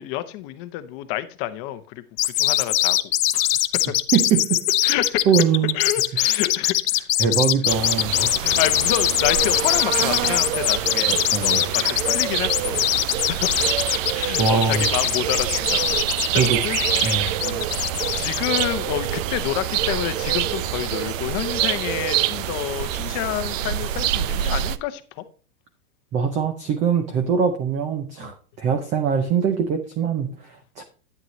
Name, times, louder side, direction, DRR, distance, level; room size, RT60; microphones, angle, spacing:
voice 1, 0.0-3.0 3.3-3.6 3.9-4.0 4.8-5.3 5.7-7.1 8.2-12.8 13.1-13.7 14.1-16.0 16.3-16.8 17.4-17.7 18.1-25.2 28.2-28.3, left 14 dB, 35° left, 0.8 m, -29 dB
sound 1, 2.2-18.6, left 13 dB, 85° left, 0.9 m, -22 dB
voice 2, 4.1-4.6 5.3-5.8 7.2-8.3 11.1-11.6 14.4-14.9 16.4-16.6 17.0-17.4 26.1-30.8, right 6 dB, 15° right, 0.5 m, -22 dB
sound 2, 7.7-24.8, right 11 dB, 55° right, 0.7 m, -26 dB
9.5 x 9.0 x 3.1 m
supercardioid pair, 150°, 46 cm